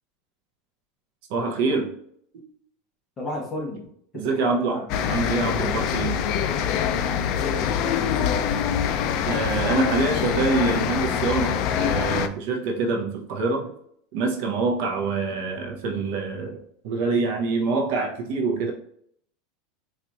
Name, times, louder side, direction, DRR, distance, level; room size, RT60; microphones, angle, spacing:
voice 1, 1.3-1.9 4.1-4.8 5.1-6.2 9.3-13.7 14.1-18.7, right 3 dB, 55° right, 0 dB, 0.7 m, -25 dB
voice 2, 3.2-3.8 4.1-4.8 6.9-8.6, left 1 dB, 20° left, -2 dB, 1.0 m, -33 dB
sound 1, 4.9-12.3, left 8 dB, 45° left, 0.3 m, -24 dB
4.2 x 2.5 x 2.9 m, 0.67 s
supercardioid pair, 165°, 0 cm